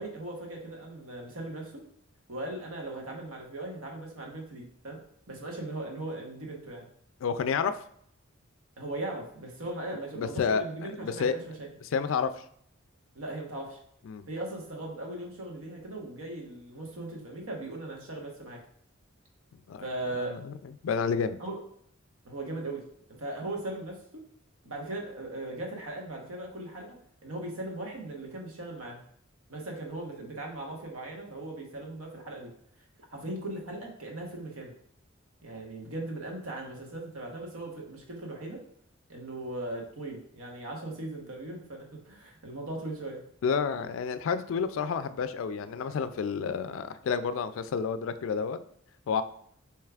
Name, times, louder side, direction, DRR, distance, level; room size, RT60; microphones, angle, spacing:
voice 1, 0.0-1.9 2.3-5.0 5.3-6.9 8.8-11.7 13.1-13.8 14.3-18.6 19.8-20.4 21.4-21.6 22.2-22.8 23.1-24.2 24.6-29.0 29.5-32.5 33.1-34.7 35.4-38.6 39.1-43.2, right 2 dB, 80° right, 0 dB, 1.1 m, -38 dB
voice 2, 7.2-7.7 9.9-10.6 11.0-11.4 11.9-12.4 14.1-14.2 19.7-19.9 20.2-20.6 20.8-21.4 43.4-48.6 49.1-49.2, left 6 dB, 65° left, 12 dB, 0.3 m, -30 dB
6.5 x 3.1 x 2.4 m, 0.67 s
head